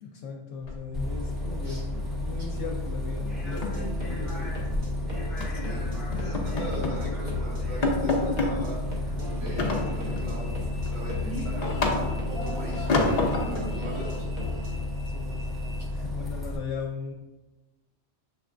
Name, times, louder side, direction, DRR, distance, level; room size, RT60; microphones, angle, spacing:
voice 1, 0.0-3.7 4.1-4.8 5.3-6.0 15.1-15.5 15.9-17.1, left 5 dB, 80° left, 0 dB, 0.9 m, -38 dB
sound 1, 0.6-1.5 1.7-2.0 2.3-2.5 2.8-2.9 3.3-4.9 5.4-5.7 6.1-7.1 7.4-7.5 7.8-8.6 9.6-10.3 10.7-12.4 12.9-13.7, left 3 dB, 45° left, 0.6 m, -28 dB
Bus, 0.9-16.6, left 1 dB, ahead, 0.7 m, -32 dB
sound 2, 3.6-14.9, left 3 dB, 40° right, 1.1 m, -38 dB
voice 2, 5.6-14.7, equal, 60° right, -4 dB, 1.6 m, -40 dB
6.4 x 3.3 x 2.5 m, 1.1 s
omnidirectional pair, 1.2 m